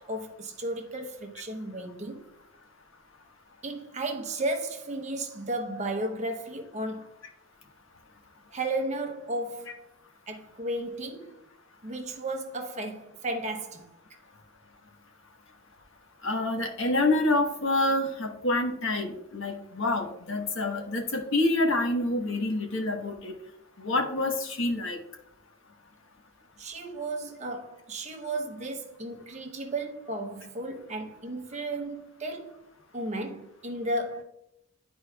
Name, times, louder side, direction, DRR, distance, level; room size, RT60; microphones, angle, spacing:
voice 1, 0.0-2.3 3.6-7.1 8.5-9.8 10.3-11.4 11.8-14.0 26.6-32.6 32.9-34.2, right 2 dB, 30° right, 0.8 m, -34 dB
voice 2, 16.2-23.3 23.8-25.0, left 2 dB, 65° left, 1.2 m, -27 dB
11.5 x 4.4 x 2.3 m
head